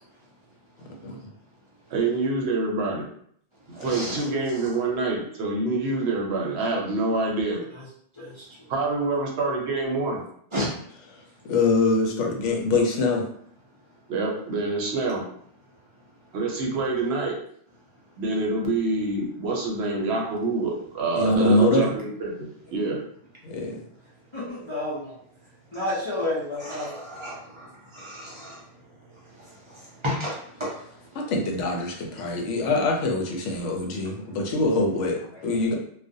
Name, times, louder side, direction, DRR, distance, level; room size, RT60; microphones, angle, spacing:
voice 1, 1.9-3.1 3.7-7.6 8.7-10.2 14.1-15.2 16.3-17.3 18.2-23.0, right 3 dB, 65° right, -1 dB, 0.8 m, -26 dB
voice 2, 3.8-4.2 10.5-10.7 26.8-27.7 27.9-28.6 30.0-30.7, left 1 dB, 45° right, -6 dB, 0.4 m, -32 dB
voice 3, 8.2-8.5 24.3-25.2 25.7-26.9 35.3-35.4, left 1 dB, 50° left, -8 dB, 0.3 m, -30 dB
voice 4, 11.5-13.2 21.2-21.9 23.4-23.8 31.2-35.7, left 2 dB, 80° left, 1 dB, 0.9 m, -23 dB
2.4 x 2.1 x 2.6 m, 0.65 s
omnidirectional pair, 1.2 m